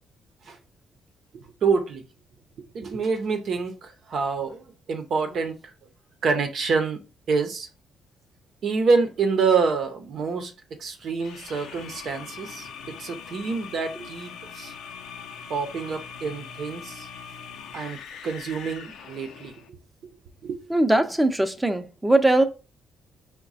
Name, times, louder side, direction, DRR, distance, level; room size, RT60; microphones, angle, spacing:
voice 1, 1.3-2.0 2.6-5.7 6.2-7.0 7.3-7.7 8.6-10.5 10.8-14.7 15.5-17.1 17.7-19.8 20.4-20.6, right 4 dB, 65° right, 0.7 m, -27 dB
sound 1, 11.2-19.7, left 6 dB, 85° left, 0.6 m, -41 dB
voice 2, 20.7-22.4, right 2 dB, 10° right, 0.6 m, -20 dB
4.8 x 2.2 x 4.0 m
cardioid pair, 90°, 0 cm